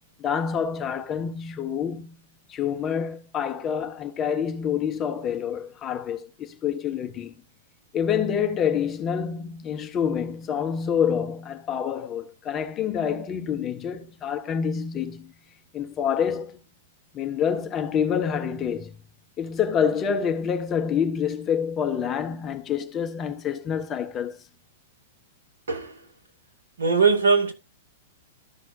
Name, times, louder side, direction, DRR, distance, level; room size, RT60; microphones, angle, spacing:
voice 1, 0.2-2.2 2.5-7.3 7.9-15.3 15.7-16.6 17.1-18.9 19.4-24.4, left 7 dB, 25° left, 1.1 m, -27 dB
voice 2, 25.7-26.0 26.8-27.5, right 4 dB, 70° right, 2.4 m, -20 dB
13.0 x 6.1 x 2.7 m
figure-of-eight pair, 105°, 0 cm